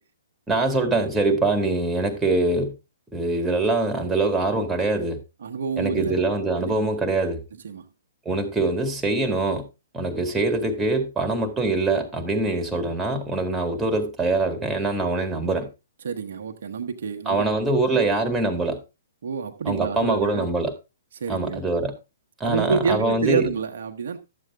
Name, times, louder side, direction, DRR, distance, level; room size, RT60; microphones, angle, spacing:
voice 1, 0.5-2.7 3.1-5.2 5.8-7.4 8.2-9.6 9.9-15.7 17.2-18.8 19.6-20.7 21.3-21.9 22.4-23.5, right 2 dB, 10° right, 1.8 m, -23 dB
voice 2, 5.4-6.2 6.6-6.9 7.6-7.9 16.0-17.4 17.9-18.1 19.2-20.5 21.1-21.6 22.4-24.2, right 5 dB, 65° right, 1.0 m, -28 dB
11.5 x 7.7 x 3.5 m
hypercardioid pair, 125°, 0 cm